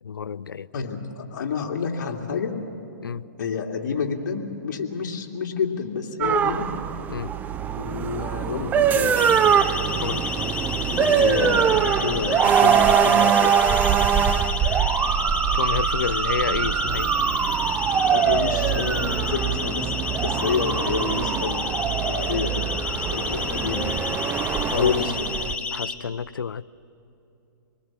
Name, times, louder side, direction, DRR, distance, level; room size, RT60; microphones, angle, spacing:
voice 1, 0.0-0.7 3.0-3.3 7.1-7.3 10.0-10.3 15.5-17.1 24.5-25.0 25.7-26.6, left 6 dB, 85° left, 19 dB, 0.5 m, -29 dB
voice 2, 0.7-2.5 3.4-6.7 7.8-9.4 10.9-13.7 18.0-23.9 24.7-25.1, left 6 dB, 55° left, 1 dB, 2.6 m, -29 dB
sound 1, 6.2-25.6, right 8 dB, 15° right, 0.6 m, -23 dB
Siren, 9.2-25.9, left 4 dB, 10° left, 1.2 m, -31 dB
26.0 x 20.0 x 7.4 m, 2.9 s
hypercardioid pair, 135°, 11 cm